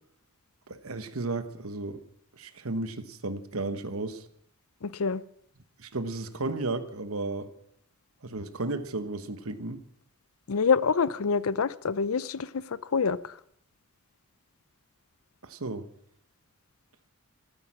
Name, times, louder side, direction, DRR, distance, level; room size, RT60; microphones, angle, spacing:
voice 1, 0.7-2.0 2.4-4.3 5.8-7.5 8.2-9.8 15.4-15.9, right 2 dB, 75° right, 10 dB, 1.1 m, -34 dB
voice 2, 4.8-5.2 10.5-12.6 12.9-13.3, left 5 dB, 80° left, 18 dB, 0.6 m, -26 dB
14.0 x 13.0 x 6.1 m, 0.70 s
head